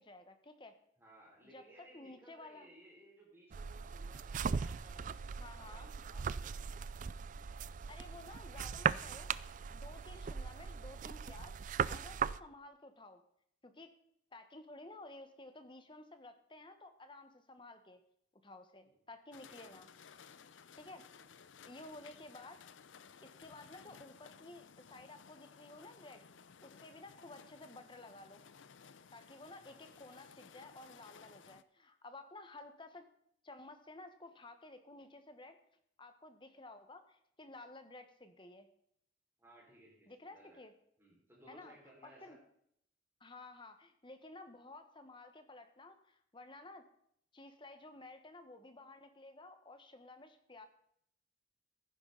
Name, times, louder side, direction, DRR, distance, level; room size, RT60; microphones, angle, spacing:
voice 1, 0.0-0.8 1.5-2.7 5.4-5.9 7.9-9.3 9.7-13.2 13.6-13.9 14.3-18.0 18.4-19.9 20.8-21.0 21.6-22.6 23.2-26.2 26.6-28.5 29.1-33.1 33.4-35.6 36.0-38.7 40.1-40.7 41.5-41.8 42.0-42.4 43.2-46.9 47.3-50.7, left 2 dB, 25° left, 8 dB, 1.2 m, -53 dB
voice 2, 1.0-6.7 18.8-19.0 19.5-19.6 21.1-21.4 29.6-29.9 39.4-40.6 41.0-42.4, right 1 dB, 15° right, -4 dB, 5.2 m, -61 dB
sound 1, 3.5-12.4, right 6 dB, 40° right, 0.3 m, -39 dB
sound 2, 19.3-31.6, left 6 dB, 80° left, 0.6 m, -58 dB
15.5 x 9.9 x 4.0 m, 0.69 s
head